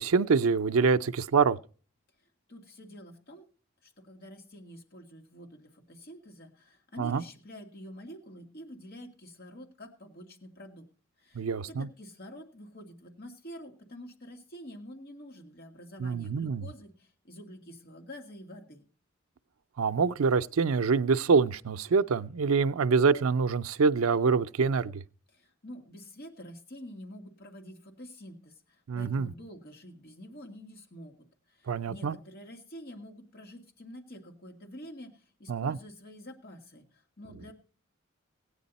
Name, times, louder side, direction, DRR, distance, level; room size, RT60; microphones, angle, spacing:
voice 1, 0.0-1.6 7.0-7.2 11.3-11.9 16.0-16.7 19.8-25.0 28.9-29.3 31.7-32.2 35.5-35.8, right 5 dB, 85° right, 0.5 m, -25 dB
voice 2, 2.5-3.4 3.8-10.9 11.2-18.9 25.3-37.5, equal, 50° left, 2.2 m, -47 dB
16.5 x 9.9 x 4.1 m
head